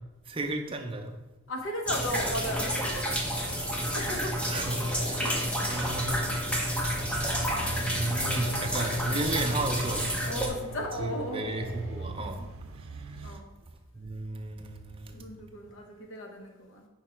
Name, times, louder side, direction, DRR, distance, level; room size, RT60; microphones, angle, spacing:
voice 1, 0.3-1.1 4.5-4.7 5.0-5.3 5.7-6.2 7.8-10.2 11.0-12.4 12.8-13.4 13.9-15.2, right 2 dB, 25° right, 4 dB, 0.6 m, -34 dB
voice 2, 1.5-3.2 3.9-4.4 5.2-5.4 7.4-8.5 10.2-11.5 12.2-12.4 13.2-13.5 15.1-16.9, equal, 65° left, 2 dB, 1.0 m, -36 dB
sound 1, 1.9-10.5, equal, 5° left, 0.8 m, -30 dB
sound 2, 2.1-12.1, left 1 dB, 30° left, 1.0 m, -45 dB
sound 3, 5.7-13.3, right 3 dB, 80° right, 0.5 m, -42 dB
6.2 x 4.6 x 4.5 m, 1.0 s
head